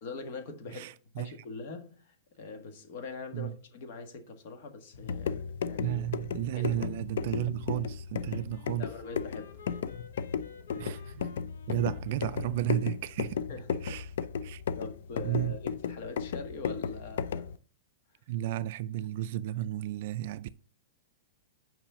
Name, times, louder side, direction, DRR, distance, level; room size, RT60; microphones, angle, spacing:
voice 1, 0.0-0.9 1.2-6.0 6.5-6.7 8.8-9.6 13.5-13.8 14.8-17.5, left 4 dB, 45° left, 1.5 m, -43 dB
voice 2, 0.7-1.3 3.3-3.6 5.8-8.9 10.8-13.4 13.8-14.1 14.4-14.6 15.2-15.6 18.3-20.6, right 14 dB, 45° right, 0.3 m, -33 dB
sound 1, 4.9-17.6, left 7 dB, 70° left, 0.5 m, -35 dB
Wind instrument woodwind instrument, 8.2-13.0, left 5 dB, 90° left, 1.4 m, -53 dB
5.8 x 5.3 x 6.8 m
supercardioid pair, 175°, 0 cm